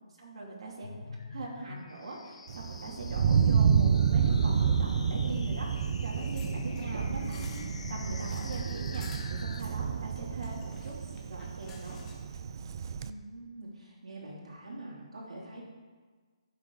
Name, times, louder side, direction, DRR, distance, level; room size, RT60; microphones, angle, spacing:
voice 1, 0.2-0.9 1.3-7.1 7.9-12.0, right 2 dB, 60° right, -4 dB, 2.7 m, -42 dB
sound 1, 0.8-9.6, left 4 dB, 70° left, 0.8 m, -44 dB
Thunder, 2.5-13.1, right 7 dB, 40° right, 0.4 m, -29 dB
sound 2, 6.0-12.4 12.8-12.9, left 4 dB, 10° left, 1.1 m, -54 dB
voice 2, 6.6-7.5 8.0-8.1 13.0-15.6, right 1 dB, 75° right, -4 dB, 2.8 m, -44 dB
15.0 x 6.0 x 3.9 m, 1.5 s
hypercardioid pair, 165°, 3 cm